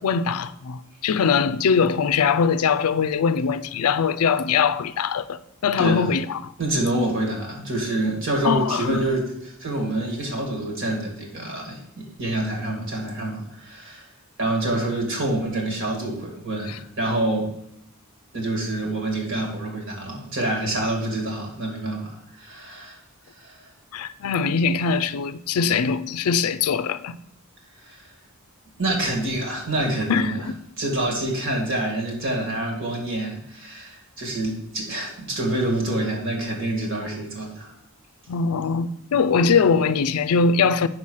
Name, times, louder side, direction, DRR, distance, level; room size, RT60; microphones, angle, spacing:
voice 1, 0.0-6.5 8.4-9.1 16.7-16.8 23.9-27.2 30.1-30.5 38.3-40.9, left 5 dB, 75° left, 0.4 m, -22 dB
voice 2, 5.8-6.1 6.6-14.1 14.4-17.6 18.3-23.0 23.4-23.6 27.9-28.1 28.8-30.5 30.8-37.7, right 1 dB, 60° right, 2.2 m, -27 dB
5.6 x 4.7 x 6.3 m
head